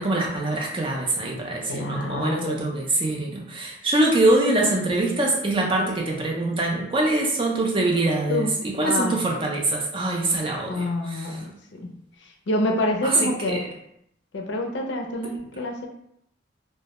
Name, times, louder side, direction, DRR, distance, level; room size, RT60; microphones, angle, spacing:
voice 1, 0.0-11.3 13.0-13.6, right 2 dB, 25° right, -1 dB, 0.4 m, -24 dB
voice 2, 1.7-2.7 8.3-8.5 8.8-9.2 10.7-11.9 12.2-13.7 14.3-15.9, left 1 dB, 65° left, 1 dB, 0.4 m, -27 dB
2.2 x 2.1 x 2.8 m, 0.74 s
head